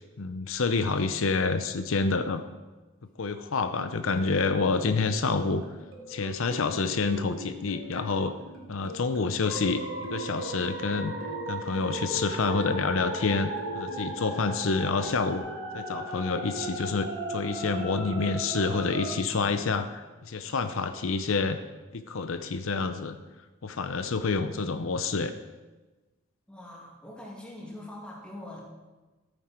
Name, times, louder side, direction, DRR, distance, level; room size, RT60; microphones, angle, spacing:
voice 1, 0.0-2.4 3.2-5.6 6.1-8.3 8.7-11.1 11.5-13.5 13.7-15.4 15.7-21.6 21.9-23.2 23.6-25.3, left 4 dB, 75° left, 9 dB, 0.6 m, -28 dB
sound 1, 3.7-9.3 10.0-12.1 12.4-15.4, equal, 85° right, 2.9 m, -43 dB
sound 2, 9.4-19.1, right 1 dB, 60° right, 2.8 m, -36 dB
voice 2, 26.5-28.6, left 1 dB, 5° left, -4 dB, 2.5 m, -43 dB
14.0 x 9.0 x 4.4 m, 1.2 s
head